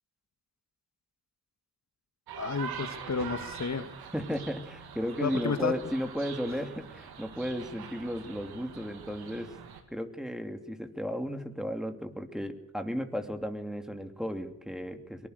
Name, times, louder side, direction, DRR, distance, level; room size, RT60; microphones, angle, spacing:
sound 1, 2.3-9.8, right 7 dB, 85° right, 2.5 m, -44 dB
voice 1, 2.4-3.9 5.2-5.7, left 5 dB, 50° left, 8 dB, 1.9 m, -31 dB
voice 2, 4.1-9.6 9.9-15.3, equal, ahead, 6 dB, 2.9 m, -34 dB
23.5 x 18.5 x 6.7 m, 0.82 s
supercardioid pair, 50°, 36 cm